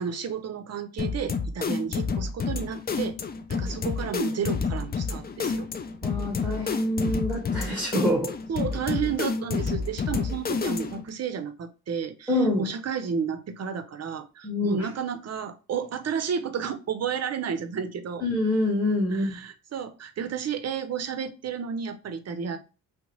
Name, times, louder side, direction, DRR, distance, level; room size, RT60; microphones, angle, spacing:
voice 1, 0.0-3.2 3.5-5.7 8.5-18.2 19.1-22.6, right 7 dB, 40° right, 0.6 m, -32 dB
sound 1, 1.0-11.1, left 5 dB, 25° left, 0.4 m, -29 dB
voice 2, 6.0-8.3 12.3-12.7 14.4-14.9 18.2-19.3, left 1 dB, 5° right, 1.0 m, -26 dB
2.8 x 2.1 x 4.0 m
supercardioid pair, 55°, 40 cm